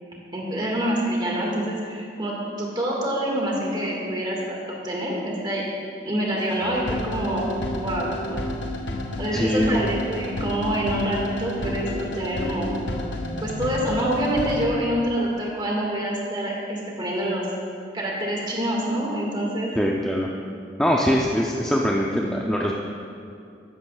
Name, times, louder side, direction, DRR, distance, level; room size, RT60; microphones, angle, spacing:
voice 1, 0.3-5.6 6.0-8.5 9.2-12.7 13.4-17.5 17.9-19.7, right 1 dB, 25° right, -3 dB, 1.9 m, -26 dB
sound 1, 6.4-14.6, left 1 dB, 65° left, 1.1 m, -31 dB
voice 2, 9.3-9.8 19.8-20.3 20.8-22.7, equal, 5° left, -2 dB, 0.5 m, -22 dB
14.5 x 11.5 x 2.4 m, 2.4 s
head